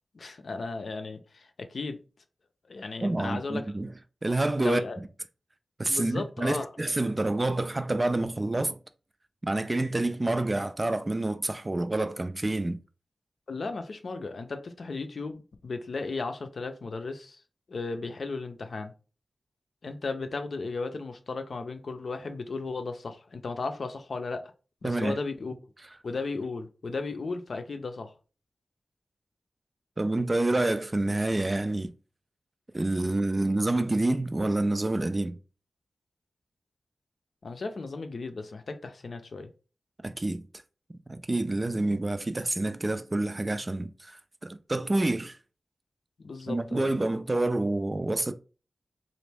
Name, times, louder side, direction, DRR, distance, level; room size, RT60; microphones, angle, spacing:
voice 1, 0.1-2.0 2.7-3.7 4.6-5.0 5.9-6.7 13.5-17.4 17.7-18.9 19.8-24.4 24.8-25.5 26.0-28.1 37.4-39.5 46.2-46.9, left 3 dB, 65° left, 0.5 m, -35 dB
voice 2, 3.0-3.9 4.2-4.8 5.8-8.8 9.4-12.8 24.8-25.2 30.0-31.9 32.7-35.4 40.0-40.5 41.1-45.4 46.5-48.3, right 2 dB, 30° right, 0.3 m, -28 dB
3.0 x 2.5 x 3.3 m
wide cardioid pair, 75°, 0 cm